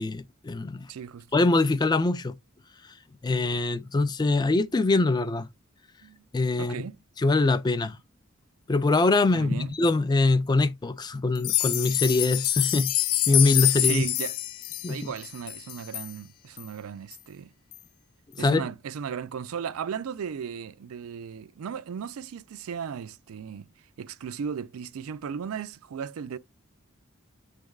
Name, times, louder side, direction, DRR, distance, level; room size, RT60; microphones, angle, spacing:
voice 1, 0.0-0.9 1.3-2.3 3.2-5.5 6.3-6.7 7.2-8.0 8.7-12.9 13.3-14.1 14.8-15.0 18.4-18.7, left 3 dB, 20° left, 0.3 m, -23 dB
voice 2, 0.9-1.3 6.0-6.2 6.6-7.0 9.3-9.7 13.7-14.4 14.9-17.5 18.4-23.7 24.0-26.4, right 7 dB, 85° right, 0.4 m, -36 dB
sound 1, 11.3-16.1 16.6-16.7 17.1-17.2 17.7-17.8, left 13 dB, 80° left, 0.5 m, -26 dB
7.1 x 3.3 x 2.3 m
head